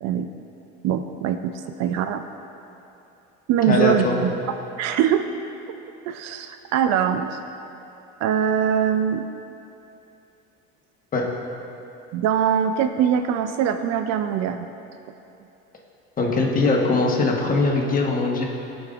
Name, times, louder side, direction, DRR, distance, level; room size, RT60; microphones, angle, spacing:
voice 1, 0.8-1.5 1.8-2.2 3.5-4.3 4.8-5.2 6.1-7.4 8.2-9.3 12.1-14.7, right 9 dB, 60° right, 8 dB, 0.4 m, -22 dB
voice 2, 3.7-4.2 11.1-11.2 16.2-18.5, left 3 dB, 30° left, -1 dB, 1.2 m, -21 dB
15.0 x 5.2 x 2.4 m, 2.8 s
cardioid pair, 115°, 30 cm